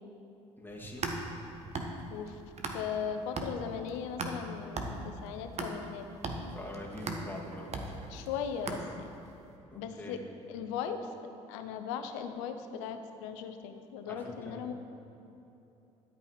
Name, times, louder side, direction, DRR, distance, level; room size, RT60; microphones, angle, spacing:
voice 1, 0.6-1.0 6.5-7.7 9.7-10.2 14.0-14.6, left 1 dB, 10° left, -3 dB, 2.6 m, -44 dB
sound 1, 0.7-3.1 3.4-9.3, right 3 dB, 45° right, 1.4 m, -38 dB
voice 2, 2.1-2.4 2.7-6.1 8.1-9.1 9.7-10.2 10.5-11.1 11.5-14.7, left 7 dB, 75° left, 8 dB, 0.8 m, -38 dB
12.5 x 8.5 x 4.8 m, 3.0 s
hypercardioid pair, 50°, 16 cm